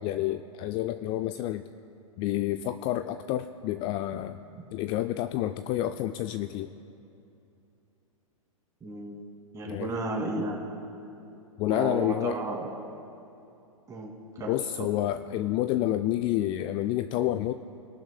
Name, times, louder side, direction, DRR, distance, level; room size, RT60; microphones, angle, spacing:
voice 1, 0.0-1.6 2.2-4.4 4.7-6.7 9.7-9.9 11.6-12.4 14.5-17.5, left 13 dB, 30° left, 10 dB, 0.4 m, -29 dB
voice 2, 8.8-9.2 9.5-10.6 11.7-12.7 13.9-14.1 14.4-14.6, right 2 dB, 20° right, 0 dB, 2.4 m, -33 dB
23.5 x 12.0 x 2.2 m, 2.8 s
figure-of-eight pair, 105°, 18 cm